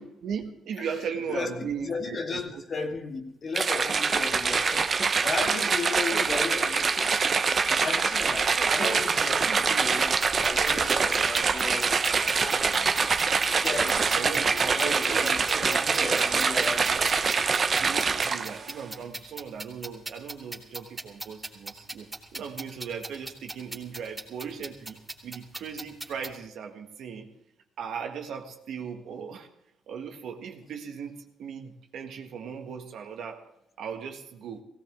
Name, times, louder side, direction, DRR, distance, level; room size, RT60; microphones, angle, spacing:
voice 1, 0.0-2.6 5.5-6.4 8.4-9.1 9.5-9.9 14.1-17.0 17.8-27.3 27.8-29.5 29.9-33.4 33.8-34.6, right 7 dB, 75° right, 1.8 m, -38 dB
voice 2, 1.3-10.1 10.4-12.0 12.2-12.7 13.4-16.9, left 4 dB, 45° left, 2.2 m, -35 dB
sound 1, 3.5-18.7, right 5 dB, 40° right, 1.0 m, -25 dB
sound 2, 10.0-26.4, right 2 dB, 15° right, 2.7 m, -41 dB
18.0 x 17.0 x 3.7 m
cardioid pair, 90°, 0 cm